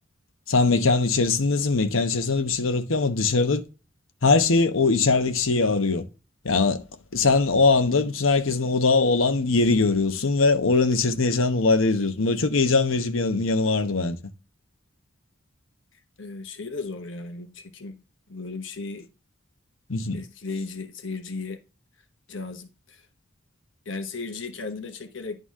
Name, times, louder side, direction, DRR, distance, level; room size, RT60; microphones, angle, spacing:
voice 1, 0.5-3.6 4.2-6.0 6.4-6.8 7.1-14.2 19.9-20.2, left 3 dB, 90° left, 1.0 m, -21 dB
voice 2, 16.2-18.0 18.3-19.1 20.1-21.6 22.3-23.0 23.8-25.4, left 3 dB, 65° left, 1.1 m, -35 dB
11.0 x 4.0 x 3.7 m
head